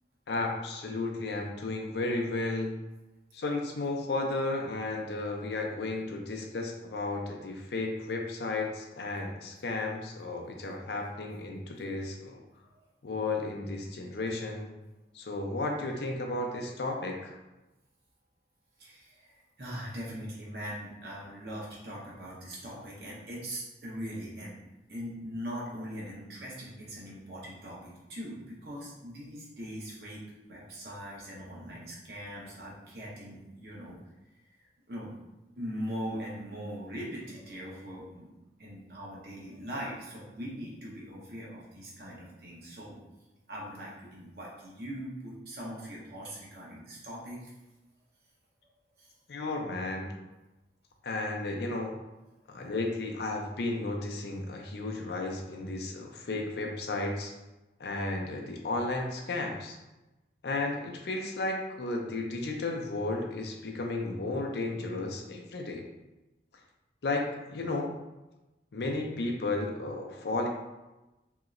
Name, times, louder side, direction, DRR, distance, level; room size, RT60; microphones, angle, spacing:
voice 1, 0.3-2.8 3.3-12.4 13.0-14.7 15.1-17.4 49.3-50.1 51.0-52.0 52.5-57.3 57.8-59.8 60.4-65.9 67.0-67.9 68.7-70.5, left 2 dB, 70° left, 1 dB, 0.5 m, -33 dB
voice 2, 18.8-24.6 24.9-30.2 30.5-34.0 34.9-35.2 35.6-38.3 38.6-43.0 43.5-47.5 49.0-49.1, equal, 65° right, -5 dB, 0.9 m, -41 dB
3.0 x 2.8 x 2.5 m, 1.0 s
head